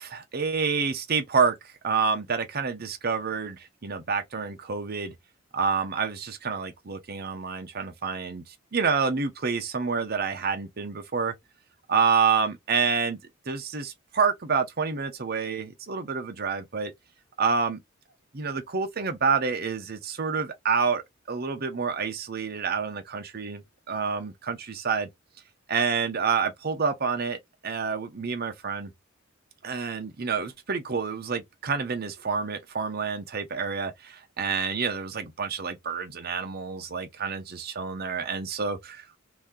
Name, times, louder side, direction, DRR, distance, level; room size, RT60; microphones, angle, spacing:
voice 1, 0.0-1.6 1.8-5.1 5.5-8.4 8.7-11.3 11.9-13.2 13.5-16.9 17.4-17.8 18.3-21.0 21.3-25.1 25.7-27.4 27.6-28.9 29.6-39.2, right 5 dB, 50° right, 0.8 m, -28 dB
2.9 x 2.7 x 3.7 m
head